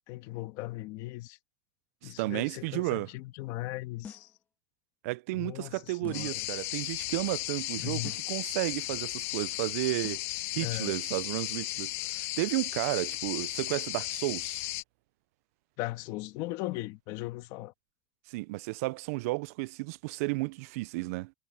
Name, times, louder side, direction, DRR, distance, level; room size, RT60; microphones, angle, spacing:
voice 1, 0.1-1.4 2.0-4.3 5.3-6.4 7.8-8.2 10.6-10.9 15.8-17.7, left 19 dB, 50° left, 1.7 m, -38 dB
voice 2, 2.0-3.1 5.0-8.0 8.3-10.2 10.5-14.6 18.3-21.3, right 23 dB, 70° right, 0.4 m, -33 dB
sound 1, 4.0-4.4 6.0-6.4 8.0-8.4 10.0-10.4, left 7 dB, 20° left, 1.6 m, -47 dB
sound 2, 6.1-14.8, left 20 dB, 65° left, 1.5 m, -35 dB
supercardioid pair, 160°, 8 cm